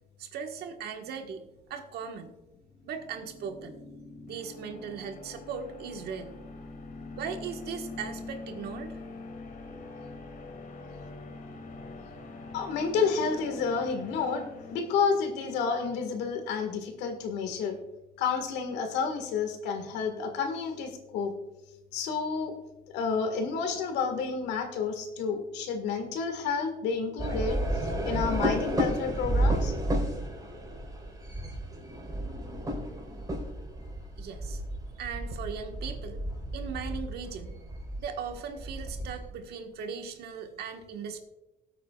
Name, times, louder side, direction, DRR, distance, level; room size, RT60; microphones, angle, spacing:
voice 1, 0.2-1.4 1.7-2.3 2.8-3.8 4.3-6.3 7.2-9.0 34.2-34.6 35.0-36.2 36.5-37.6 38.0-41.2, right 6 dB, 70° right, 5 dB, 1.5 m, -38 dB
sound 1, 2.6-15.6, left 3 dB, 55° left, 2.6 m, -44 dB
voice 2, 12.5-17.8 18.2-21.3 21.9-22.5 22.9-29.8, left 5 dB, 90° left, 6 dB, 1.8 m, -30 dB
sound 2, 27.2-39.3, right 1 dB, 20° right, 4.2 m, -32 dB
19.5 x 8.5 x 2.4 m, 1.0 s
cardioid pair, 110°, 17 cm